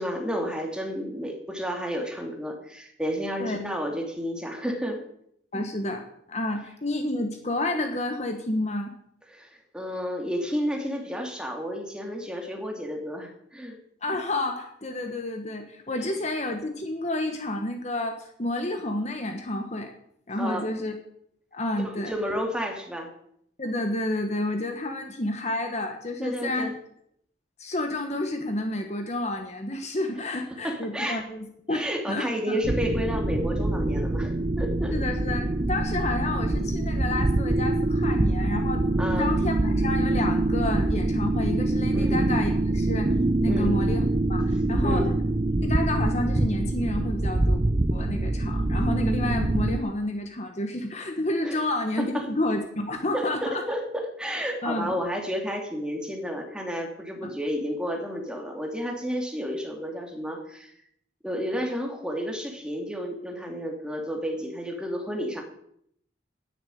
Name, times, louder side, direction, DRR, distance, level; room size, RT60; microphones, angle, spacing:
voice 1, 0.0-5.0 9.3-13.8 20.4-20.7 21.8-23.1 26.2-26.7 30.6-31.3 31.7-34.9 39.0-39.3 41.9-42.2 43.5-43.8 44.8-45.1 51.4-51.6 52.0-52.2 53.1-53.8 54.2-60.7 61.2-65.4, equal, 5° right, 1 dB, 2.7 m, -31 dB
voice 2, 5.5-8.9 14.0-19.9 20.3-20.9 21.5-22.1 23.6-26.7 27.6-32.6 34.9-38.9 39.2-43.1 43.4-44.0 44.3-45.1 45.6-47.6 47.9-53.6 54.6-55.0 57.2-57.3, left 1 dB, 35° left, 5 dB, 1.3 m, -30 dB
sound 1, 32.6-49.8, right 2 dB, 30° right, 0.6 m, -25 dB
10.5 x 10.0 x 9.3 m, 0.71 s
head